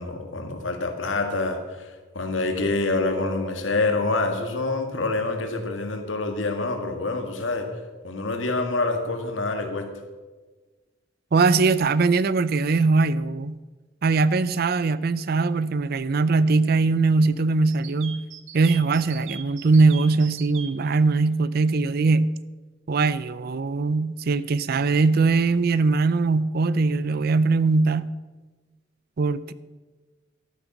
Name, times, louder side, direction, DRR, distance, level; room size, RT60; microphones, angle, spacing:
voice 1, 0.0-7.7 8.0-9.9, left 3 dB, 80° left, 5 dB, 1.9 m, -26 dB
Mallet percussion, 3.2-9.5, left 2 dB, 40° left, 2.3 m, -46 dB
voice 2, 11.3-13.6 14.0-18.2 18.5-22.3 22.9-28.1 29.2-29.5, right 3 dB, 55° right, 17 dB, 0.5 m, -21 dB
sound 1, 17.7-20.7, right 9 dB, 80° right, 0.9 m, -39 dB
12.5 x 9.2 x 5.9 m, 1.3 s
head